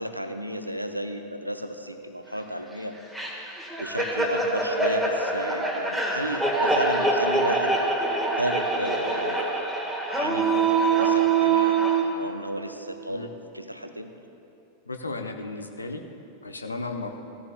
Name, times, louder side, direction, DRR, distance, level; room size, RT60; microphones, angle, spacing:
voice 1, 0.0-3.0 3.8-7.7 8.4-9.7 10.1-14.1, equal, 90° right, 7 dB, 0.6 m, -33 dB
sound 1, 3.1-12.0, right 3 dB, ahead, 1.8 m, -24 dB
voice 2, 14.9-16.0 16.4-17.2, left 3 dB, 80° left, 4 dB, 0.8 m, -34 dB
17.0 x 13.5 x 2.4 m, 2.9 s
figure-of-eight pair, 90°, 0 cm